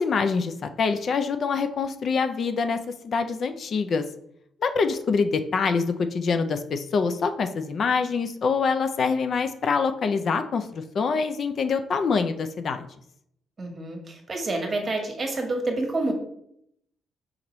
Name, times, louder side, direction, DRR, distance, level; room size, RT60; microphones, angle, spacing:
voice 1, 0.0-2.8 3.0-4.0 4.6-12.9, left 5 dB, 55° left, 8 dB, 0.4 m, -25 dB
voice 2, 13.6-16.1, right 2 dB, 35° right, 3 dB, 1.2 m, -28 dB
4.5 x 3.8 x 3.0 m, 0.72 s
cardioid pair, 90°, 0 cm